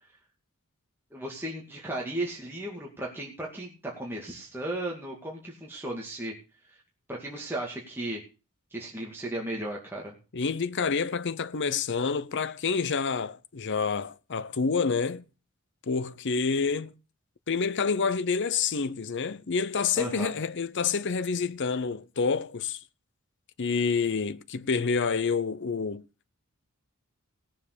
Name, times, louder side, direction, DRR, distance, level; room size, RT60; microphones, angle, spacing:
voice 1, 1.1-6.3 7.1-8.2 8.7-10.1 20.0-20.3, right 1 dB, 10° right, 2.3 m, -35 dB
voice 2, 10.3-15.2 15.9-16.9 17.5-22.8 23.6-26.0, left 5 dB, 55° left, 0.7 m, -28 dB
17.5 x 7.4 x 6.7 m
head